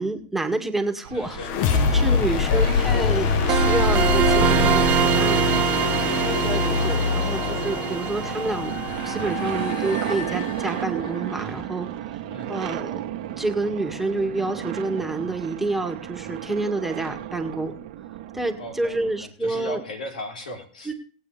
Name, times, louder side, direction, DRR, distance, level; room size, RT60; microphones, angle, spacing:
voice 1, 0.0-1.4 1.9-5.5 6.4-8.7 9.0-11.9 12.5-13.0 13.4-17.7 18.3-19.8 20.9-21.0, right 2 dB, 5° right, 4 dB, 1.9 m, -28 dB
sound 1, 1.0-19.3, right 12 dB, 65° right, 1.3 m, -33 dB
voice 2, 1.1-3.1 6.1-7.3 12.3-12.6 18.6-20.9, left 1 dB, 90° left, 2 dB, 3.4 m, -39 dB
sound 2, 1.3-11.1, left 5 dB, 55° left, 1.0 m, -24 dB
sound 3, 3.5-10.2, right 9 dB, 35° right, 1.1 m, -25 dB
20.0 x 8.4 x 3.3 m, 0.42 s
hypercardioid pair, 105°, 4 cm